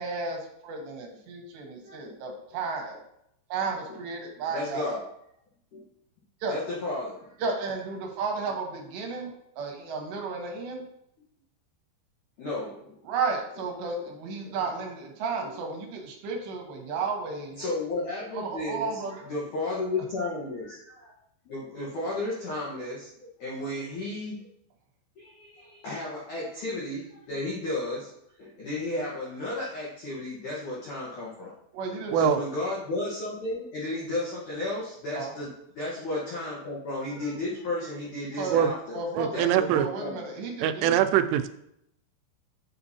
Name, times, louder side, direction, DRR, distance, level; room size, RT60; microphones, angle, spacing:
voice 1, 0.0-3.0 3.5-5.0 6.4-6.6 7.4-10.8 13.0-17.6 18.4-19.2 31.7-32.1 35.2-35.3 38.4-38.6 38.9-39.4 39.7-40.9, right 4 dB, 75° right, 1 dB, 3.0 m, -33 dB
voice 2, 1.8-2.2 2.5-2.6 3.9-4.0 4.5-5.1 5.7-5.9 6.5-7.6 12.4-13.0 14.0-14.1 15.4-15.6 17.6-21.1 21.4-24.4 25.2-28.1 28.4-31.5 31.9-39.0 39.3-40.2, left 2 dB, 75° left, -6 dB, 1.8 m, -33 dB
voice 3, 32.1-32.4 38.5-38.7 39.2-39.9 40.6-41.5, right 10 dB, 90° right, 10 dB, 3.1 m, -23 dB
7.8 x 6.7 x 2.8 m, 0.76 s
omnidirectional pair, 5.6 m